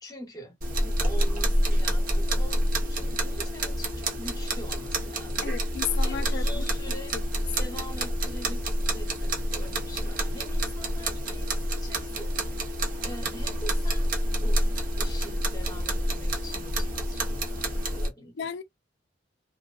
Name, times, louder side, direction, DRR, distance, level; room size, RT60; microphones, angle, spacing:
voice 1, 0.0-5.6 6.0-7.2 7.6-12.3 13.0-14.1 14.4-14.6 15.0-18.5, right 1 dB, 20° left, 0.9 m, -44 dB
sound 1, 0.6-18.1, right 1 dB, 50° right, 0.7 m, -28 dB
voice 2, 5.4-6.6 7.1-7.2 18.4-18.6, left 8 dB, 65° left, 0.4 m, -33 dB
2.6 x 2.1 x 2.3 m
head